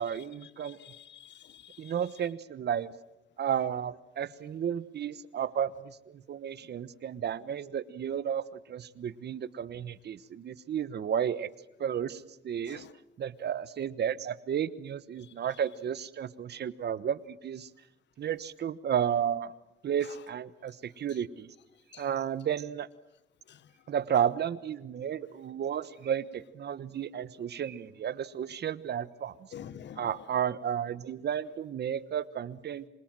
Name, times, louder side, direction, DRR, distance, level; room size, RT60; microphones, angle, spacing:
voice 1, 0.0-0.8 1.8-2.9 3.4-11.5 11.8-12.8 13.2-17.7 18.2-19.5 19.8-21.5 22.0-22.9 23.9-29.3 30.0-32.9, right 9 dB, 55° right, 1.2 m, -32 dB
voice 2, 0.6-1.9 12.7-12.9 15.2-15.3 21.9-22.0 23.5-23.6 29.5-30.2, left 9 dB, 65° left, 1.2 m, -48 dB
26.5 x 26.0 x 7.6 m
cardioid pair, 90°, 20 cm